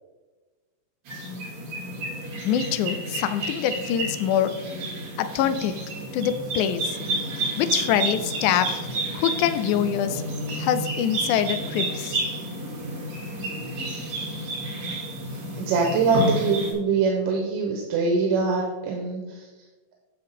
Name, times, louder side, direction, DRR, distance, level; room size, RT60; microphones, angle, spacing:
sound 1, 1.0-16.7, right 1 dB, 60° right, 3.8 m, -31 dB
voice 1, 2.4-4.6 5.2-5.8 6.1-7.0 7.6-8.9 9.1-10.2 10.6-12.2, left 9 dB, 80° left, 11 dB, 1.9 m, -24 dB
voice 2, 15.6-19.5, right 4 dB, 85° right, 1 dB, 2.6 m, -23 dB
10.0 x 6.7 x 3.5 m, 1.3 s
omnidirectional pair, 3.8 m